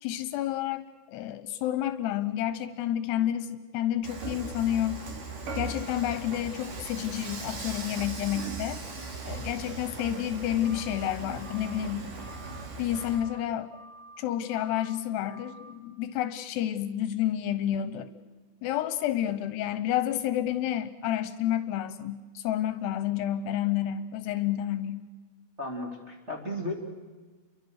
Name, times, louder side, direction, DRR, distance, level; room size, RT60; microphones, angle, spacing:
voice 1, 0.0-5.0 5.6-8.8 9.2-12.1 12.8-13.7 14.2-18.1 18.6-25.1, left 11 dB, 80° left, 12 dB, 2.9 m, -30 dB
Dishes pots and pans / Frying (food), 4.0-13.2, right 3 dB, 50° right, 4.4 m, -38 dB
sound 1, 10.6-11.1 11.4-11.9 12.2-12.7 12.9-13.4 13.7-14.2 14.5-15.0 15.3-15.7, right 1 dB, 80° right, 4.9 m, -50 dB
voice 2, 25.6-26.7, left 1 dB, 15° right, -3 dB, 3.0 m, -34 dB
29.5 x 23.5 x 6.6 m, 1.4 s
omnidirectional pair, 5.0 m